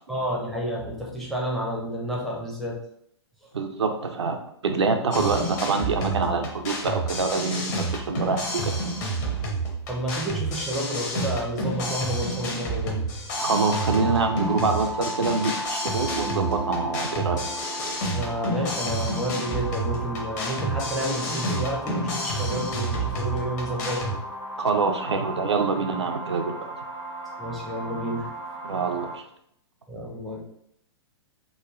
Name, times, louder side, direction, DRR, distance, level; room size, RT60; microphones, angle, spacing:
voice 1, 0.1-2.8 9.9-13.1 18.1-24.1 27.4-28.3 29.9-30.4, right 1 dB, ahead, -3 dB, 0.4 m, -30 dB
voice 2, 3.5-8.7 13.4-17.5 24.6-26.7 28.6-29.2, right 4 dB, 75° right, 5 dB, 0.4 m, -25 dB
sound 1, 5.1-24.2, right 1 dB, 40° left, 0.7 m, -30 dB
sound 2, 13.3-29.2, right 1 dB, 75° left, 0.6 m, -36 dB
sound 3, 15.8-20.6, right 2 dB, 55° left, 1.3 m, -41 dB
3.1 x 2.2 x 2.3 m, 0.72 s
figure-of-eight pair, 110°, 14 cm